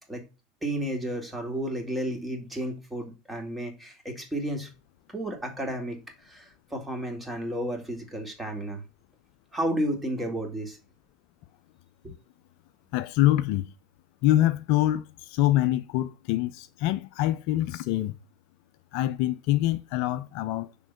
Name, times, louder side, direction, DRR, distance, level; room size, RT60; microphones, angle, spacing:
voice 1, 0.6-4.7 5.1-8.8 9.5-10.8 12.0-12.1, right 1 dB, 10° right, 2.2 m, -32 dB
voice 2, 12.9-13.7 14.2-18.2 18.9-20.7, left 14 dB, 60° left, 0.4 m, -25 dB
6.1 x 3.8 x 5.7 m
hypercardioid pair, 80°, 0 cm